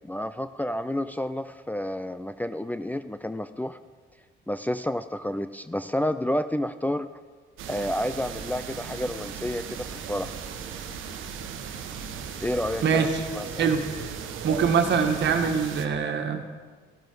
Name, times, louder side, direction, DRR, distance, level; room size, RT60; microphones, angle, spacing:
voice 1, 0.0-3.8 4.5-7.1 7.7-10.4 12.4-13.8, left 1 dB, 10° left, 10 dB, 0.5 m, -30 dB
sound 1, 7.6-15.9, right 7 dB, 80° right, 1.1 m, -37 dB
voice 2, 14.4-16.5, right 6 dB, 65° right, 5 dB, 1.7 m, -23 dB
14.0 x 12.0 x 4.6 m, 1.5 s
cardioid pair, 90°, 20 cm